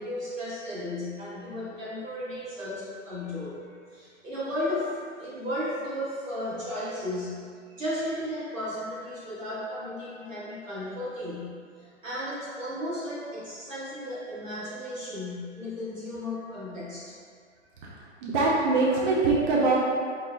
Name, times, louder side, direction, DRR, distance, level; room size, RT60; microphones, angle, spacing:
voice 1, 0.0-7.4 7.7-17.1, left 1 dB, 85° right, -9 dB, 1.5 m, -34 dB
voice 2, 17.8-19.8, right 3 dB, 40° right, -5 dB, 0.6 m, -24 dB
4.1 x 2.7 x 2.2 m, 2.1 s
figure-of-eight pair, 120°, 38 cm